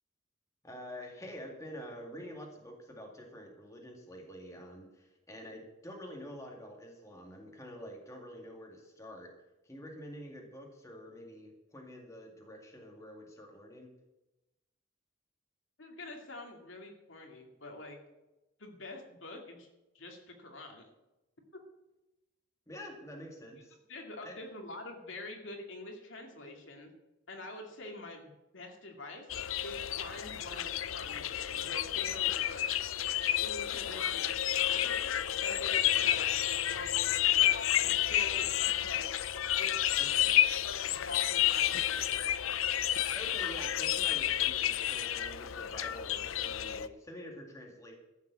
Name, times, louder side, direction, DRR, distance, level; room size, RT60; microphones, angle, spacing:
voice 1, 0.6-9.3 9.6-13.9 22.7-23.8 24.2-24.4 40.0-40.4 43.1-48.0, equal, 15° left, 0 dB, 2.1 m, -47 dB
voice 2, 15.8-18.0 18.6-19.7 19.9-20.9 23.9-26.9 27.3-29.3 29.6-32.7 33.4-37.6 37.8-39.9 40.2-40.4 40.6-42.2, left 2 dB, 70° left, 2 dB, 2.4 m, -46 dB
sound 1, 29.3-46.9, left 11 dB, 90° left, 0.6 m, -30 dB
14.0 x 7.3 x 8.3 m, 0.99 s
head